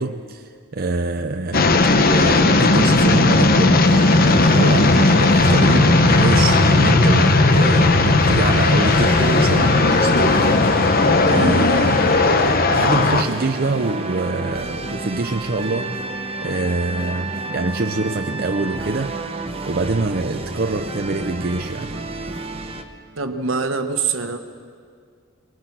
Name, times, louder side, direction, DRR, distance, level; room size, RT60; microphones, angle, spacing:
voice 1, 0.0-4.0 4.2-12.3 12.7-16.1 16.4-19.2 19.7-22.0, right 3 dB, 45° right, 5 dB, 0.6 m, -25 dB
sound 1, 1.5-13.2, left 2 dB, 45° left, 0.9 m, -15 dB
sound 2, 3.8-22.8, right 2 dB, 30° right, 1.1 m, -31 dB
Harp, 10.2-15.4, left 2 dB, 70° left, 5.6 m, -40 dB
voice 2, 23.2-24.4, right 5 dB, 75° right, 7 dB, 1.3 m, -24 dB
24.0 x 20.5 x 6.0 m, 2.1 s
head